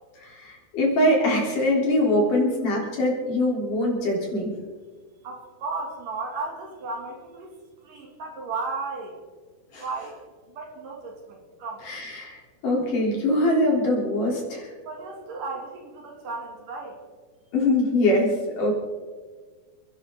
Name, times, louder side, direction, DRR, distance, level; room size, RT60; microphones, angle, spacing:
voice 1, 0.2-4.5 9.7-9.8 11.8-14.7 17.5-18.7, left 1 dB, 60° left, -2 dB, 4.9 m, -23 dB
voice 2, 5.2-7.6 7.8-9.2 9.8-10.2 10.5-11.9 14.8-17.0, right 3 dB, 60° right, 0 dB, 4.0 m, -34 dB
29.5 x 10.5 x 3.8 m, 1.5 s
omnidirectional pair, 4.4 m